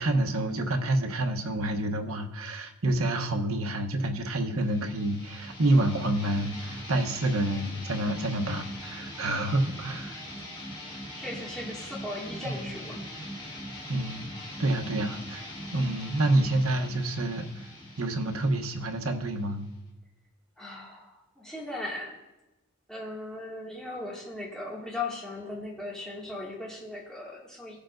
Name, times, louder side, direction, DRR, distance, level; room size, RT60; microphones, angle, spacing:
voice 1, 0.0-10.2 12.4-12.6 13.9-14.2 14.6-15.5 15.7-17.4 18.0-19.7, right 1 dB, 85° right, 4 dB, 1.0 m, -28 dB
sound 1, 4.5-19.9, equal, 25° left, 2.1 m, -41 dB
voice 2, 11.2-13.0 20.6-22.2 22.9-27.8, left 2 dB, 5° left, -5 dB, 2.1 m, -38 dB
17.5 x 6.7 x 2.6 m, 0.99 s
head